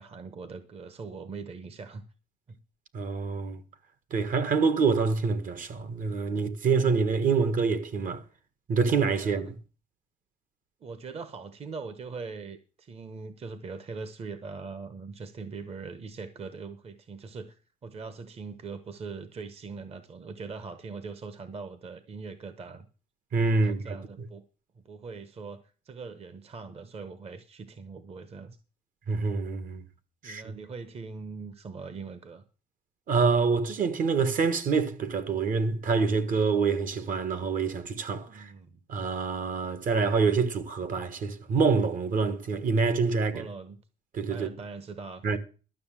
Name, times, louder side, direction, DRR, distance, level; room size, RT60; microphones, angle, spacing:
voice 1, 0.0-2.0 2.5-2.6 9.2-9.6 10.8-22.9 23.6-24.4 24.7-25.6 25.8-28.6 30.2-32.4 38.2-38.8 43.3-43.8 44.3-45.2, right 4 dB, 35° right, 1.1 m, -41 dB
voice 2, 2.9-3.6 4.1-8.2 8.7-9.5 23.3-24.3 29.1-29.8 30.2-30.5 33.1-38.5 38.9-43.5 44.1-44.5 45.2-45.4, right 4 dB, 50° right, 1.5 m, -26 dB
12.5 x 6.4 x 7.5 m
cardioid pair, 110°, 17 cm